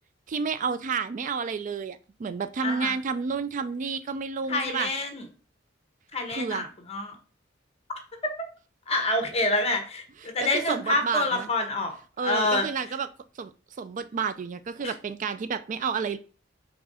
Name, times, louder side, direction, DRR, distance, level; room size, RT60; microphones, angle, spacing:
voice 1, 0.3-4.9 6.3-6.6 10.7-11.5 12.2-13.1 13.4-13.5 13.8-16.2, right 5 dB, 40° right, 13 dB, 0.3 m, -30 dB
voice 2, 4.5-5.3 6.1-7.2 8.2-8.3 8.9-11.9 12.2-12.7 14.8-15.0, left 2 dB, 35° left, 5 dB, 1.3 m, -27 dB
4.6 x 3.6 x 5.5 m, 0.36 s
head